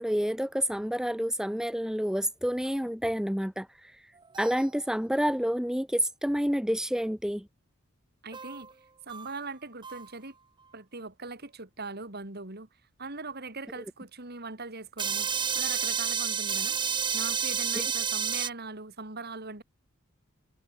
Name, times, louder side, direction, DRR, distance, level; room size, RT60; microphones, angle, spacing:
voice 1, 0.0-3.7 4.4-7.4, equal, 5° right, 1.7 m, -28 dB
sound 1, 4.2-4.8 8.3-8.7 9.1-9.3 9.8-10.1 15.0-18.5, right 7 dB, 20° right, 0.8 m, -30 dB
voice 2, 8.2-8.7 9.1-10.3 10.7-12.7 13.0-19.6, right 3 dB, 50° right, 3.6 m, -41 dB
head